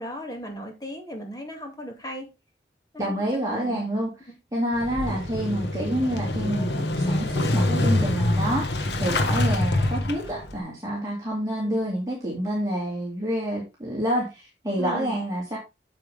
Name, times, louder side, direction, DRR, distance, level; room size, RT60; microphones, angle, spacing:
voice 1, 0.0-2.3 2.9-3.1 3.5-3.9 9.0-9.1 11.6-12.0 14.8-15.2, equal, 20° left, 2.3 m, -36 dB
voice 2, 3.0-4.1 4.5-15.6, right 1 dB, 20° right, 2.6 m, -28 dB
Motorcycle / Engine starting, 4.7-10.6, left 1 dB, 80° left, 1.6 m, -25 dB
9.0 x 7.2 x 3.5 m
head